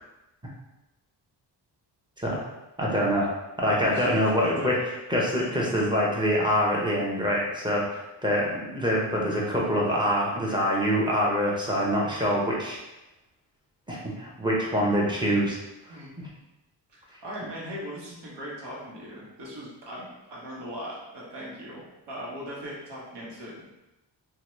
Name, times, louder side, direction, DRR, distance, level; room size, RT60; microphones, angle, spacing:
voice 1, 2.8-3.3 3.6-4.7 5.1-12.8 13.9-15.6 16.2-16.3, equal, 10° right, -4 dB, 0.6 m, -25 dB
voice 2, 3.7-4.9 15.9-16.1 16.9-23.6, equal, 75° right, -5 dB, 1.1 m, -39 dB
2.8 x 2.2 x 3.0 m, 0.96 s
wide cardioid pair, 115°, 42 cm